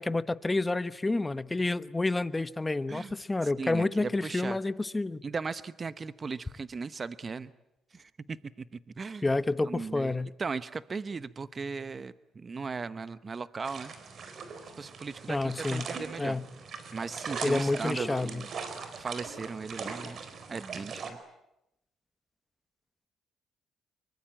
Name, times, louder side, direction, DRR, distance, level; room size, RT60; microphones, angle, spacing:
voice 1, 0.0-5.2 9.2-10.3 15.3-15.9 16.2-16.4 17.4-18.4, left 2 dB, 20° left, 1.0 m, -29 dB
voice 2, 3.4-4.6 5.2-7.5 7.9-9.3 9.7-13.9 14.8-16.4 16.9-18.5 19.0-21.2, right 4 dB, 35° right, 0.9 m, -37 dB
sound 1, 13.6-21.1, right 5 dB, 55° right, 4.3 m, -40 dB
25.5 x 24.0 x 8.8 m
cardioid pair, 90°, 0 cm